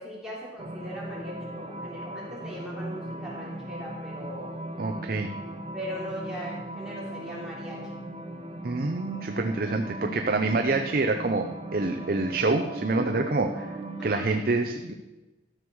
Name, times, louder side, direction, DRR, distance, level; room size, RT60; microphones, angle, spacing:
voice 1, 0.0-4.5 5.7-8.0 14.0-14.2, equal, 5° right, -6 dB, 3.1 m, -39 dB
sound 1, 0.6-14.3, right 1 dB, 30° right, 1.0 m, -38 dB
voice 2, 4.8-5.3 8.6-14.9, right 3 dB, 50° right, 5 dB, 0.6 m, -27 dB
13.0 x 6.4 x 6.2 m, 1.1 s
head